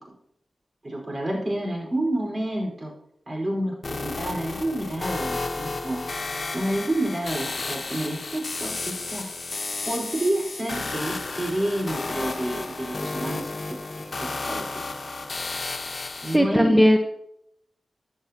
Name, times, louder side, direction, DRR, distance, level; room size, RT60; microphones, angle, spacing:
voice 1, 0.8-2.9 3.3-6.0 6.5-9.3 9.9-13.8 14.2-14.9 16.2-16.8, right 1 dB, 35° right, 1 dB, 4.9 m, -29 dB
sound 1, 3.8-16.4, left 3 dB, 50° left, 1.2 m, -32 dB
voice 2, 16.3-17.0, equal, 5° right, 4 dB, 1.1 m, -17 dB
16.0 x 10.5 x 3.0 m, 0.75 s
cardioid pair, 50°, 0 cm